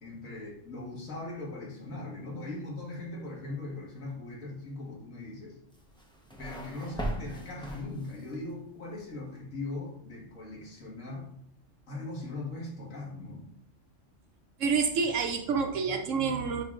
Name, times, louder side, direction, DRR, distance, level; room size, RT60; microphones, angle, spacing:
voice 1, 0.0-5.6 6.4-11.3 11.9-13.5, left 2 dB, 75° left, -2 dB, 2.0 m, -40 dB
sound 1, 5.7-8.4, right 1 dB, 5° left, 0.7 m, -39 dB
voice 2, 14.6-16.6, right 5 dB, 75° right, 5 dB, 1.0 m, -28 dB
8.9 x 4.5 x 2.5 m, 0.68 s
omnidirectional pair, 1.4 m